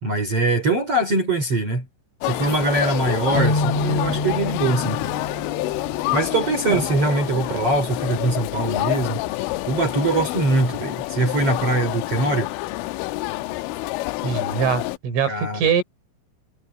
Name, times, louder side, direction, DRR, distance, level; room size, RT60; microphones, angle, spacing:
voice 1, 0.0-1.9 2.2-5.0 6.1-9.2 9.7-12.5 15.3-15.7, right 2 dB, 35° right, 3.7 m, -22 dB
sound 1, 2.2-15.0, left 19 dB, 85° left, 3.2 m, -28 dB
sound 2, 3.4-6.9, left 1 dB, 35° left, 6.4 m, -27 dB
voice 2, 14.2-15.8, right 7 dB, 75° right, 7.2 m, -23 dB
omnidirectional pair, 5.7 m